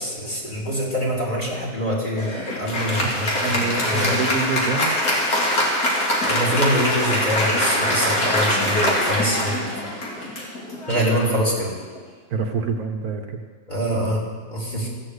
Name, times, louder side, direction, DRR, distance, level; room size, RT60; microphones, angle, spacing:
voice 1, 0.0-4.2 6.0-9.7 10.9-11.7 13.7-14.2 14.5-14.9, equal, 30° left, -5 dB, 3.1 m, -25 dB
Applause, 2.2-12.0, left 1 dB, 75° left, 2.9 m, -23 dB
voice 2, 3.4-4.9 10.9-11.1 12.3-13.4, right 4 dB, 70° right, 4 dB, 1.5 m, -26 dB
14.5 x 7.3 x 8.0 m, 1.5 s
omnidirectional pair, 1.7 m